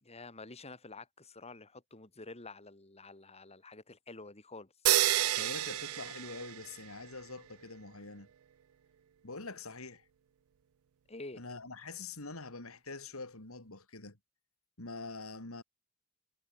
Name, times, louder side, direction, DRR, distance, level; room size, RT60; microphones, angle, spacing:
voice 1, 0.0-4.7 11.1-11.4, left 3 dB, 30° left, 2.7 m, -49 dB
sound 1, 4.9-7.0, right 15 dB, 70° right, 0.4 m, -30 dB
voice 2, 5.3-8.3 9.2-10.1 11.3-14.2 14.8-15.6, left 3 dB, 75° left, 3.4 m, -45 dB
head